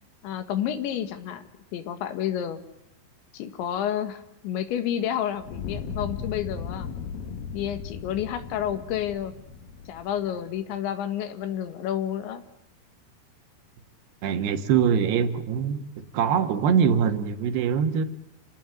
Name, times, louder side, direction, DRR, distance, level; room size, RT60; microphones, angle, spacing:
voice 1, 0.2-1.4 1.7-2.6 3.3-6.9 7.5-9.3 9.9-12.4, left 10 dB, 80° left, 3.9 m, -30 dB
Fire, 5.4-10.5, left 6 dB, 60° left, 3.1 m, -37 dB
voice 2, 14.2-15.8 16.1-18.0, right 7 dB, 70° right, 3.3 m, -23 dB
28.5 x 19.0 x 9.2 m
omnidirectional pair, 5.4 m